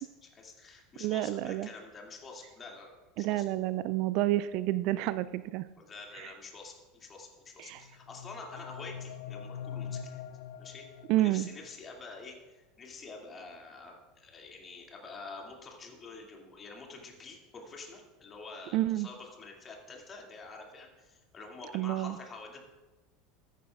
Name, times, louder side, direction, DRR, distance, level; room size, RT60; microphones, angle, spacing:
voice 1, 0.0-3.4 5.8-10.2 10.6-10.8 11.2-22.6, left 3 dB, 30° left, 0 dB, 2.4 m, -47 dB
voice 2, 1.0-1.7 3.2-5.6 6.2-6.3 7.6-7.8 11.1-11.5 18.7-19.1 21.7-22.2, right 15 dB, 55° right, 16 dB, 0.3 m, -29 dB
sound 1, 7.8-11.7, left 7 dB, 70° left, 0.4 m, -43 dB
14.5 x 10.0 x 2.4 m, 1.2 s
figure-of-eight pair, 75°, 0 cm